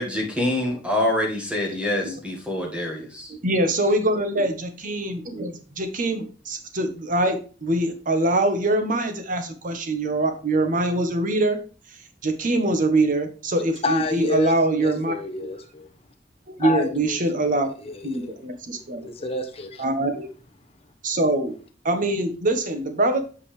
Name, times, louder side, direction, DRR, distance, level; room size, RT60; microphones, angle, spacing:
voice 1, 0.0-3.3, left 1 dB, 5° right, -1 dB, 1.7 m, -26 dB
voice 2, 3.0-11.6 12.2-15.1 16.6-17.7 18.0-19.1 19.8-20.3 21.0-21.5 21.8-23.2, right 2 dB, 45° right, 7 dB, 1.2 m, -23 dB
voice 3, 13.8-14.5 14.8-15.9 16.6-17.5 17.8-18.4 19.0-19.8, left 3 dB, 35° left, 3 dB, 0.9 m, -29 dB
8.1 x 5.4 x 3.3 m, 0.37 s
head